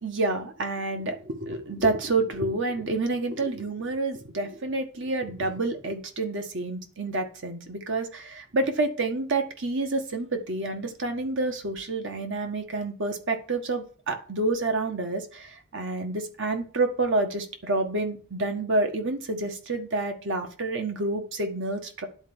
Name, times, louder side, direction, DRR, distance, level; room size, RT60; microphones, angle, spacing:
voice 1, 0.0-22.1, right 2 dB, 60° right, 5 dB, 1.7 m, -28 dB
10.5 x 4.6 x 7.2 m, 0.41 s
head